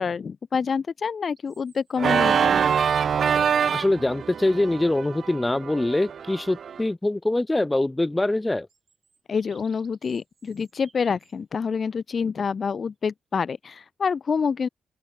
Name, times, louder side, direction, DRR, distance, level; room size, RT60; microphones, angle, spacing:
voice 1, 0.0-2.6 9.3-14.7, left 6 dB, 45° left, 1.0 m, -27 dB
sound 1, 1.4-2.9 4.0-4.1 8.7-11.4, right 5 dB, 40° right, 6.2 m, -59 dB
Organ, 2.0-6.8, right 7 dB, 55° right, 0.8 m, -24 dB
voice 2, 3.7-8.7, left 2 dB, 10° left, 0.5 m, -24 dB
open air
cardioid pair, 120°, 0 cm